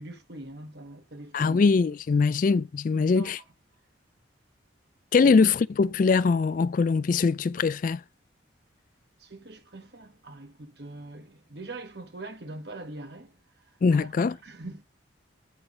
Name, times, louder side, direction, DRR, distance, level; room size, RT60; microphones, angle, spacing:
voice 1, 0.0-1.6 2.2-2.3 2.9-3.4 5.2-5.3 9.2-13.3 13.9-14.1 14.4-14.8, right 2 dB, 60° right, 1.4 m, -42 dB
voice 2, 1.3-3.4 5.1-8.0 13.8-14.4, left 4 dB, 45° left, 0.3 m, -22 dB
9.1 x 3.4 x 5.3 m
head